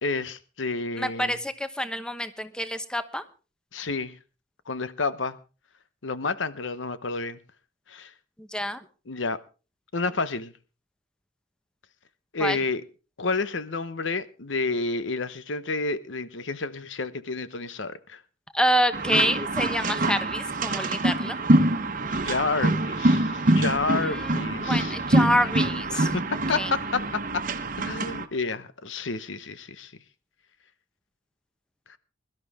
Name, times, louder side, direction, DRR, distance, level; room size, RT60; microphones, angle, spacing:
voice 1, 0.0-1.4 3.7-4.1 4.7-5.4 6.0-7.4 7.9-8.1 9.1-9.4 9.9-10.5 12.3-12.8 13.2-18.2 22.0-25.0 25.9-27.4 27.8-29.9, left 3 dB, 85° left, 1.0 m, -30 dB
voice 2, 1.0-3.2 8.4-8.8 12.4-12.6 18.5-21.4 24.0-24.3 24.6-26.1 26.6-26.7, equal, 5° left, 1.0 m, -27 dB
sound 1, 18.9-28.3, right 1 dB, 45° right, 1.1 m, -25 dB
22.0 x 12.0 x 3.6 m
head